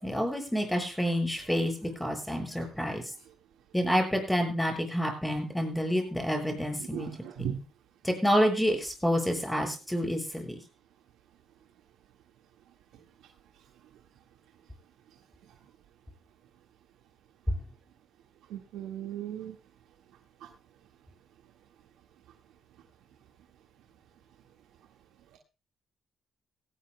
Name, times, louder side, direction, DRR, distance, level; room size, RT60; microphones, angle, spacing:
voice 1, 0.0-3.0 3.7-7.1 7.4-7.5 8.0-10.6, equal, 5° left, 3 dB, 7.2 m, -28 dB
voice 2, 6.9-7.6 18.5-19.5, right 10 dB, 90° right, 2 dB, 1.7 m, -37 dB
18.0 x 17.5 x 2.2 m, 0.32 s
cardioid pair, 90°, 0 cm